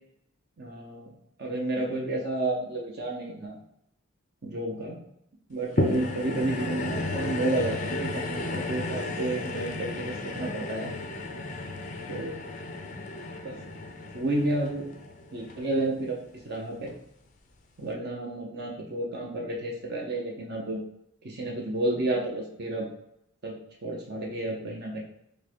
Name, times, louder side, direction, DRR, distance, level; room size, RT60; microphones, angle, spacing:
voice 1, 0.6-1.1 1.4-3.6 4.4-5.0 5.5-10.9 12.1-12.3 13.4-13.6 14.1-14.9 15.3-16.2 16.4-16.9 17.8-20.8 21.2-22.9 23.4-23.5 23.8-25.0, right 2 dB, 50° right, -1 dB, 0.8 m, -31 dB
sound 1, 5.8-16.3 16.9-17.0, left 2 dB, 35° left, 0.5 m, -33 dB
4.8 x 2.3 x 4.4 m, 0.77 s
head